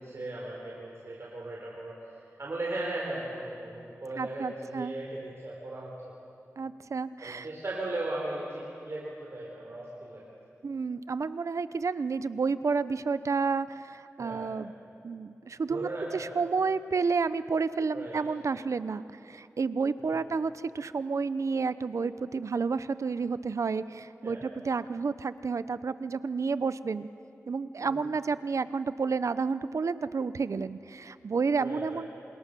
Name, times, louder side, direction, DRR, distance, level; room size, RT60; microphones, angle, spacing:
voice 1, 0.0-6.2 7.2-10.3 14.2-14.5 15.7-16.4 17.9-18.2 20.0-20.3 24.2-24.4 27.8-28.0 31.6-32.0, right 2 dB, 55° right, -3 dB, 4.5 m, -37 dB
voice 2, 4.2-5.0 6.6-7.5 10.6-14.7 15.0-27.1 27.5-32.1, right 4 dB, 75° right, 14 dB, 0.8 m, -30 dB
27.5 x 27.5 x 6.9 m, 2.7 s
wide cardioid pair, 70°, 5 cm